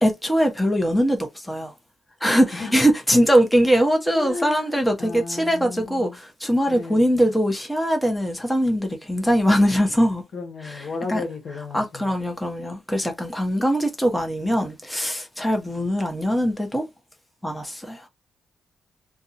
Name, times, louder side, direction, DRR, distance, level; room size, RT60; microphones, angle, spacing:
voice 1, 0.0-1.7 2.2-10.2 10.6-10.8 11.1-11.2 11.7-16.8 17.4-18.1, equal, 5° left, 1.0 m, -21 dB
voice 2, 4.1-6.2 6.7-7.2 10.3-12.1, left 4 dB, 65° left, 1.1 m, -34 dB
2.6 x 2.3 x 2.6 m
supercardioid pair, 50°, 0 cm